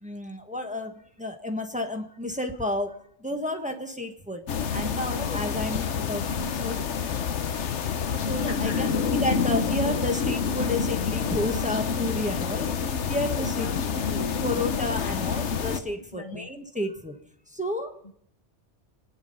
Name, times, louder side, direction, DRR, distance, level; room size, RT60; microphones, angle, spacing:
voice 1, 0.0-6.8 8.2-13.7 14.4-17.2 17.5-18.0, left 1 dB, 5° right, 3 dB, 1.4 m, -31 dB
sound 1, 4.5-15.8, left 6 dB, 70° left, 1.2 m, -28 dB
voice 2, 8.3-8.9 13.3-14.4 16.1-16.5 18.0-18.1, left 2 dB, 35° left, 2 dB, 1.1 m, -40 dB
26.0 x 9.8 x 5.5 m, 0.70 s
omnidirectional pair, 1.2 m